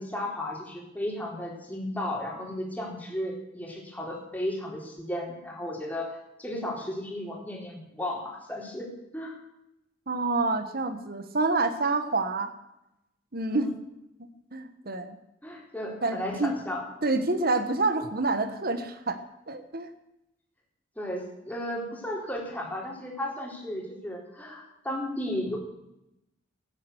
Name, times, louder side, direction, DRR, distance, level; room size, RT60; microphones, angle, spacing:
voice 1, 0.0-8.9 9.1-9.3 13.5-13.7 15.4-16.8 21.0-25.6, left 1 dB, 10° left, -2 dB, 3.9 m, -34 dB
voice 2, 10.1-12.5 13.3-13.7 14.5-15.2 16.0-16.5 17.0-19.2 19.5-19.9, right 3 dB, 50° right, 9 dB, 1.4 m, -27 dB
16.0 x 10.0 x 8.0 m, 0.86 s
head